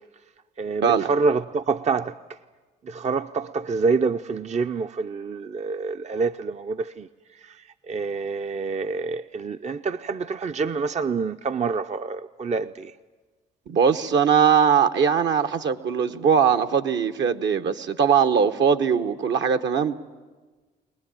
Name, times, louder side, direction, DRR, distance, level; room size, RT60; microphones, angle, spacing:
voice 1, 0.6-2.4 2.8-12.9, right 4 dB, 35° right, 0.6 m, -27 dB
voice 2, 13.7-20.0, right 7 dB, 60° right, 1.1 m, -20 dB
23.0 x 19.5 x 9.0 m
hypercardioid pair, 50°, 21 cm